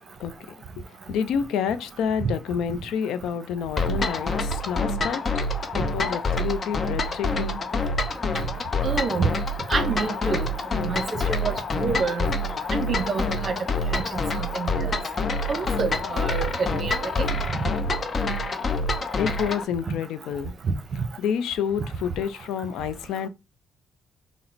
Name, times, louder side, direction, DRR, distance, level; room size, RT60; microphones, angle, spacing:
voice 1, 1.1-5.2 5.7-7.6 19.2-20.5 21.2-23.3, left 7 dB, 85° left, 0.4 m, -28 dB
sound 1, 3.8-19.6, left 2 dB, 40° left, 0.6 m, -27 dB
voice 2, 8.8-9.3 9.7-12.3 12.7-15.0 15.5-17.3 19.9-20.0 20.6-20.7, right 4 dB, 45° right, 0.7 m, -28 dB
3.9 x 2.0 x 4.3 m
cardioid pair, 90°, 0 cm